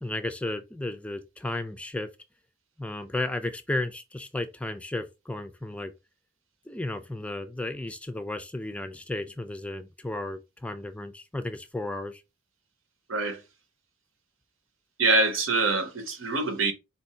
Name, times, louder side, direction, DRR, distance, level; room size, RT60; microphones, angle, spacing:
voice 1, 0.0-2.1 2.8-5.9 6.7-12.2, left 2 dB, 5° left, 0.3 m, -34 dB
voice 2, 13.1-13.4 15.0-16.7, right 3 dB, 80° right, 1.2 m, -25 dB
4.4 x 2.7 x 4.2 m
head